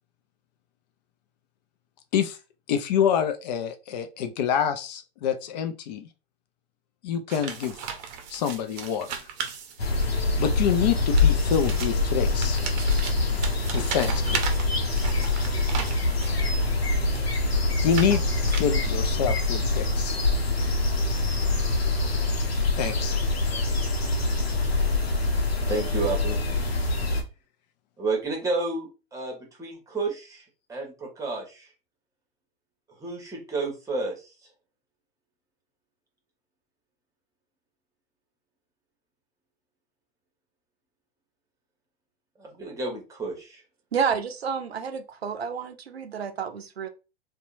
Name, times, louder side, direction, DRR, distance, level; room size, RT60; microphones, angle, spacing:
voice 1, 2.7-6.1 7.0-7.8 8.3-9.2 10.4-12.6 13.7-14.6 17.8-20.2 22.8-23.2, left 8 dB, 45° left, 0.4 m, -27 dB
sound 1, 7.3-10.2 10.9-16.5 17.1-19.0, right 7 dB, 40° right, 0.6 m, -36 dB
sound 2, 9.8-27.2, left 2 dB, 80° left, 0.8 m, -25 dB
voice 2, 22.0-22.4 25.7-26.4 28.0-31.7 33.0-34.3 42.4-43.6, right 3 dB, 10° right, 1.0 m, -31 dB
voice 3, 43.9-46.9, right 6 dB, 85° right, 0.5 m, -30 dB
2.7 x 2.2 x 2.5 m
figure-of-eight pair, 100°, 30 cm